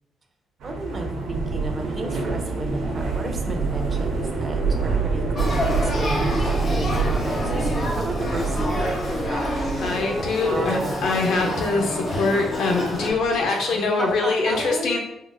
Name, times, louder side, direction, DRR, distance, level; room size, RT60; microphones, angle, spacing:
voice 1, 0.6-9.1 10.2-11.1 13.5-15.0, right 2 dB, 35° right, 3 dB, 0.5 m, -33 dB
sound 1, 0.6-13.4, right 4 dB, 80° right, 0.8 m, -27 dB
Male speech man speaking / Child speech kid speaking / Conversation, 5.3-13.1, left 1 dB, 40° left, 1.0 m, -28 dB
voice 2, 9.8-15.0, left 3 dB, 75° left, 1 dB, 0.6 m, -23 dB
3.7 x 2.5 x 2.3 m, 0.82 s
cardioid pair, 90°, 0 cm